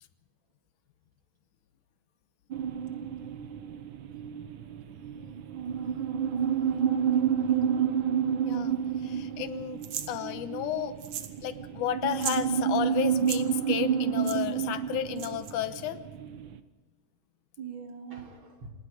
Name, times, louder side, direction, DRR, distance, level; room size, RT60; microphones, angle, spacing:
sound 1, 2.5-16.6, right 8 dB, 80° right, 1.0 m, -30 dB
voice 1, 6.7-7.9 17.6-18.7, right 6 dB, 45° right, 3 dB, 2.6 m, -41 dB
voice 2, 8.4-9.8 10.1-11.0 11.4-16.0, left 10 dB, 85° left, 11 dB, 2.5 m, -32 dB
sound 2, 9.8-10.1 11.0-11.4 11.6-11.7 12.1-12.4 13.1-13.4 14.2-14.4 15.2-15.5, right 10 dB, 65° right, 2.3 m, -36 dB
28.0 x 19.5 x 4.9 m, 1.2 s
omnidirectional pair, 3.5 m